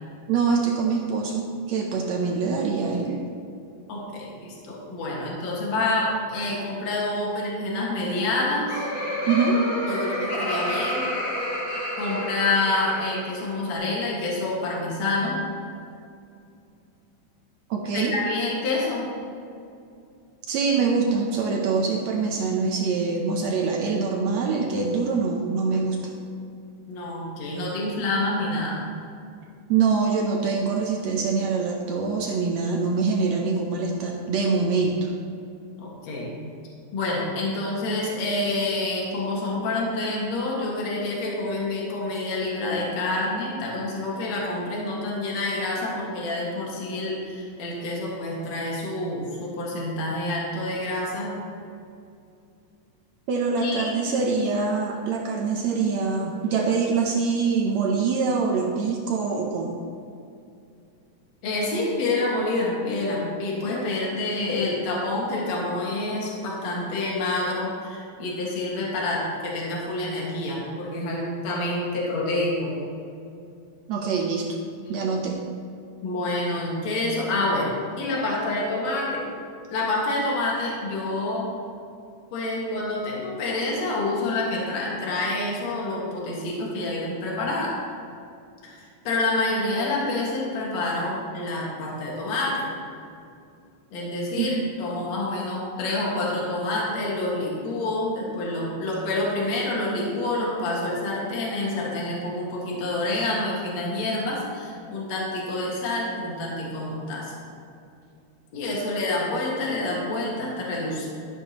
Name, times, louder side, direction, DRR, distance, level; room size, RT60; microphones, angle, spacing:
voice 1, 0.3-3.3 9.3-9.6 17.7-18.1 20.5-26.1 29.7-35.1 53.3-59.8 73.9-74.6 74.9-75.4 94.4-94.6, right 5 dB, 70° right, 0 dB, 1.8 m, -24 dB
voice 2, 3.9-8.9 9.9-11.1 12.0-15.4 17.9-19.1 26.9-28.9 35.8-36.4 36.9-51.3 53.6-53.9 61.4-72.8 76.0-79.2 79.7-81.5 82.3-87.8 88.6-92.7 93.9-107.4 108.5-111.1, left 2 dB, 60° left, -4 dB, 3.0 m, -27 dB
Laughter, 8.3-13.4, equal, 35° left, 1.8 m, -29 dB
12.0 x 10.5 x 3.0 m, 2.5 s
omnidirectional pair, 3.6 m